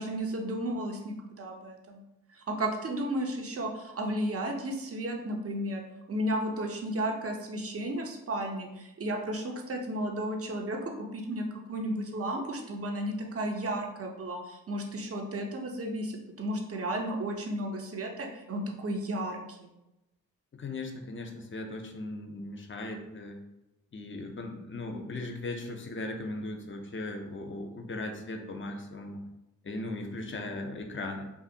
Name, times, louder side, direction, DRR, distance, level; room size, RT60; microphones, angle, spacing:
voice 1, 0.0-2.0 2.3-5.8 6.1-19.7, right 1 dB, 40° right, 2 dB, 0.6 m, -33 dB
voice 2, 20.5-23.4 23.9-29.2 29.6-31.3, left 2 dB, 35° left, 3 dB, 0.5 m, -38 dB
2.5 x 2.4 x 2.7 m, 0.92 s
cardioid pair, 45°, 37 cm